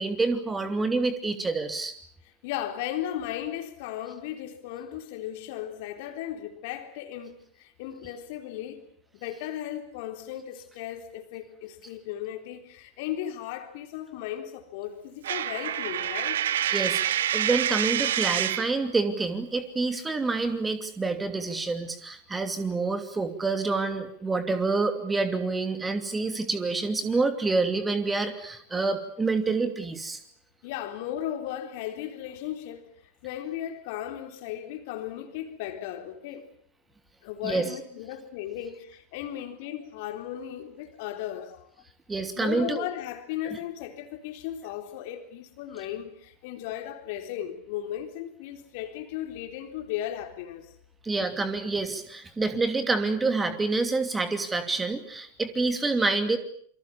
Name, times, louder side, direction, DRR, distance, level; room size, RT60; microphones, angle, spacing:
voice 1, 0.0-1.9 16.7-30.2 37.4-37.7 42.1-42.9 51.0-56.4, right 3 dB, 10° right, 2.8 m, -27 dB
voice 2, 2.4-8.9 9.1-16.5 30.6-32.9 33.2-36.5 37.2-41.7 42.4-50.7, left 11 dB, 50° left, 3.7 m, -36 dB
Coin (dropping), 15.2-18.8, right 11 dB, 60° right, 1.2 m, -27 dB
28.0 x 25.0 x 7.1 m
figure-of-eight pair, 90°, 0 cm